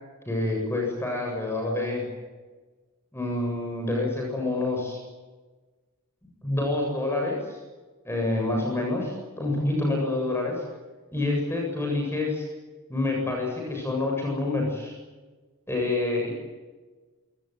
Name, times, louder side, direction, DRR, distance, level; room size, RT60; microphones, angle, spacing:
voice 1, 0.3-2.0 3.1-5.0 6.4-7.6 8.0-10.5 11.1-12.5 12.9-14.9 15.7-16.3, left 2 dB, 10° left, 0 dB, 7.6 m, -27 dB
29.0 x 18.5 x 9.6 m, 1.3 s
head